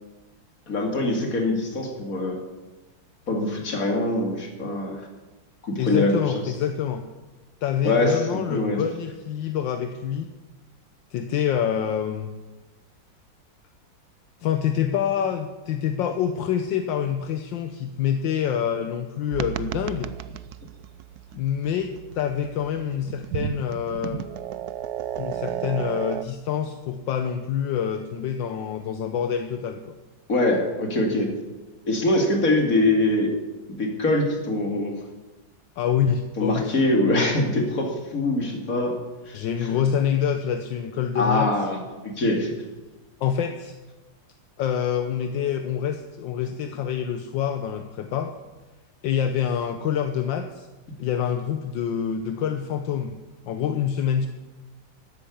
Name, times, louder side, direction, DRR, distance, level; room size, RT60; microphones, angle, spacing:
voice 1, 0.7-2.4 3.3-5.0 5.6-6.4 7.8-8.8 30.3-31.3 31.9-33.3 33.7-34.9 36.4-39.0 39.3-39.4 41.1-42.5, left 2 dB, 45° left, 2 dB, 2.9 m, -23 dB
voice 2, 5.8-7.0 7.6-10.3 11.1-12.4 14.4-20.1 21.3-24.2 25.2-29.9 35.8-36.7 39.3-41.5 43.2-43.7 44.6-48.3 49.0-50.7 51.0-53.2 53.5-54.3, left 8 dB, 75° left, 8 dB, 1.5 m, -26 dB
sound 1, 19.3-26.2, right 11 dB, 70° right, 1.0 m, -33 dB
13.0 x 10.5 x 8.6 m, 1.2 s
omnidirectional pair, 2.1 m